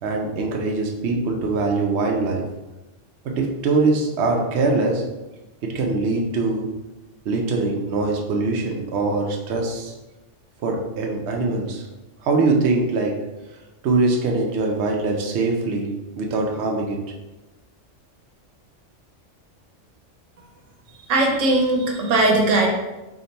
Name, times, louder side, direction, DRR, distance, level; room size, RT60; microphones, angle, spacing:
voice 1, 0.0-2.4 3.2-5.0 5.6-6.7 7.3-9.9 10.6-11.8 12.2-13.2 13.8-15.9 16.2-17.0, right 3 dB, 65° right, 1 dB, 0.8 m, -22 dB
voice 2, 21.1-22.7, right 2 dB, 85° right, 1 dB, 1.1 m, -19 dB
3.7 x 2.1 x 3.9 m, 1.1 s
omnidirectional pair, 1.3 m